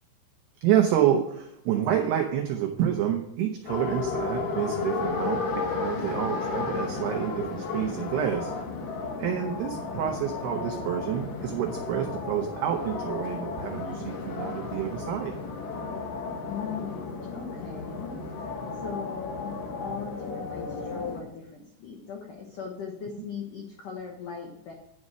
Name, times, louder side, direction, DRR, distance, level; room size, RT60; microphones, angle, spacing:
voice 1, 0.6-8.5 9.2-15.3, right 10 dB, 90° right, 3 dB, 2.3 m, -28 dB
sound 1, 3.7-21.2, left 4 dB, 70° left, 2.1 m, -33 dB
voice 2, 9.3-9.6 16.4-24.7, left 7 dB, 85° left, 0 dB, 1.8 m, -40 dB
11.0 x 5.4 x 6.2 m, 0.82 s
omnidirectional pair, 5.8 m